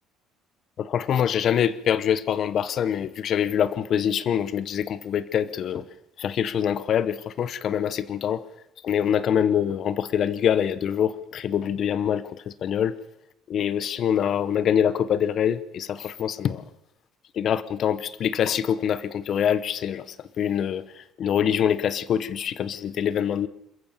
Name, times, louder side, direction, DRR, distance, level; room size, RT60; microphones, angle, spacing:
voice 1, 0.8-5.9 6.2-8.4 8.8-13.0 13.5-16.6 17.3-23.5, left 9 dB, 40° left, 17 dB, 0.8 m, -25 dB
27.5 x 14.5 x 6.7 m, 0.87 s
cardioid pair, 170°, 0 cm